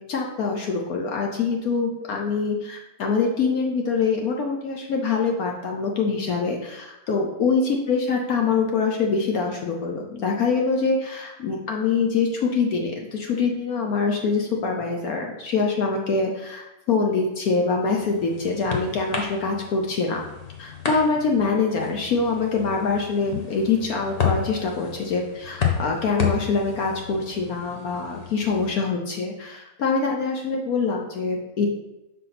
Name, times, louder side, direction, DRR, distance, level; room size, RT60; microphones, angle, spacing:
voice 1, 0.1-20.2 20.6-31.7, left 4 dB, 60° left, 1 dB, 1.0 m, -24 dB
sound 1, 17.6-28.7, left 6 dB, 80° left, 0.3 m, -32 dB
5.6 x 3.8 x 5.8 m, 0.98 s
omnidirectional pair, 2.1 m